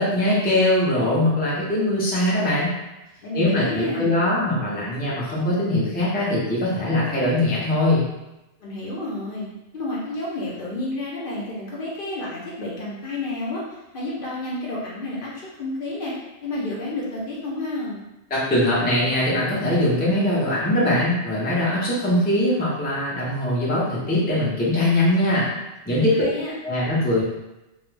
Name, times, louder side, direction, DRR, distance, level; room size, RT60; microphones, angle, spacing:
voice 1, 0.0-2.7 3.3-8.0 18.3-25.5 25.9-26.3 26.6-27.2, left 1 dB, 15° left, -7 dB, 0.4 m, -21 dB
voice 2, 3.2-4.2 8.6-9.5 9.7-13.6 13.9-16.1 16.4-18.0 26.0-26.5, left 2 dB, 60° left, -4 dB, 0.7 m, -30 dB
2.3 x 2.1 x 3.1 m, 0.98 s
omnidirectional pair, 1.2 m